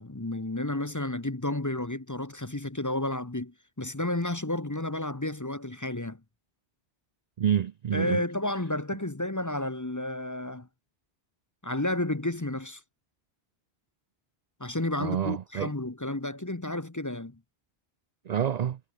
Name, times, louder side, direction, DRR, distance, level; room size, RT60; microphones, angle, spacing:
voice 1, 0.0-6.2 7.9-10.7 11.6-12.8 14.6-17.4, left 1 dB, 20° left, 0.9 m, -31 dB
voice 2, 7.4-8.2 15.0-15.7 18.3-18.8, right 9 dB, 55° right, 0.5 m, -28 dB
omnidirectional pair, 1.1 m